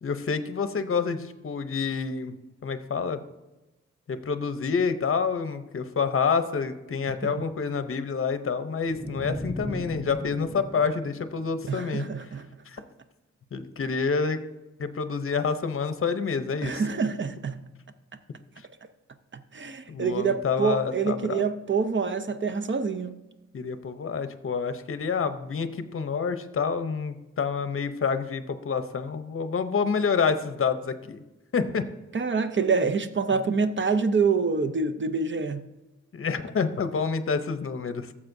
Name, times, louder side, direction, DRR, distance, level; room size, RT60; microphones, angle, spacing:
voice 1, 0.0-2.3 2.6-3.2 4.1-12.0 12.7-12.8 13.5-14.4 14.8-16.8 19.9-21.4 23.5-31.2 31.5-31.9 36.1-38.1, left 5 dB, 50° left, 0.7 m, -28 dB
sound 1, 8.9-12.1, equal, 10° right, 1.2 m, -37 dB
voice 2, 11.7-12.5 16.6-17.6 19.3-23.2 32.1-35.6, right 5 dB, 40° right, 0.6 m, -26 dB
14.5 x 7.3 x 2.6 m
wide cardioid pair, 115°, 29 cm